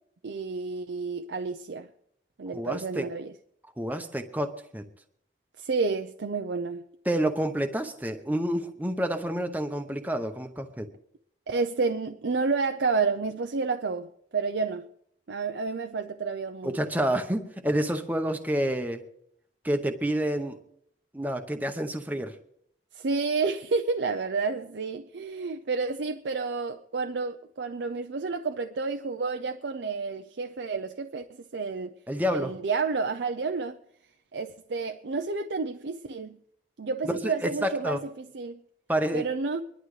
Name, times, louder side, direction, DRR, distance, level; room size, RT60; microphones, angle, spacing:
voice 1, 0.2-1.9 2.4-3.3 5.6-6.8 11.5-14.8 15.3-16.9 22.9-31.9 32.3-33.8 34.3-36.4 36.8-38.6 39.1-39.6, right 4 dB, 85° right, 0.6 m, -30 dB
voice 2, 2.5-3.1 3.8-4.8 7.1-10.9 16.6-19.0 19.6-20.6 21.1-22.4 32.1-32.5 37.0-38.0 38.9-39.3, right 1 dB, 10° right, 0.8 m, -29 dB
24.5 x 11.5 x 3.3 m
head